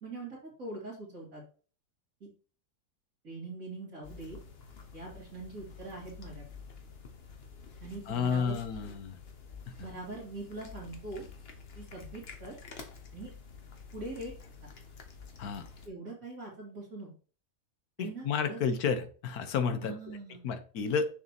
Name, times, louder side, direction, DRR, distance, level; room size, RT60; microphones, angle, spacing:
voice 1, 0.0-1.4 2.2-2.3 3.2-4.4 4.9-6.4 7.8-8.9 9.8-11.2 11.7-12.6 13.1-13.3 13.9-14.5 15.8-17.1 18.0-18.6 19.8-20.4, right 2 dB, 60° right, -5 dB, 2.7 m, -42 dB
sound 1, 4.0-15.9, left 5 dB, 45° left, 1.2 m, -49 dB
voice 2, 8.1-9.2 9.7-9.8 15.4-15.7 18.0-19.9 20.4-21.1, left 6 dB, 70° left, 9 dB, 1.4 m, -31 dB
6.6 x 6.4 x 2.9 m, 0.39 s
omnidirectional pair, 1.7 m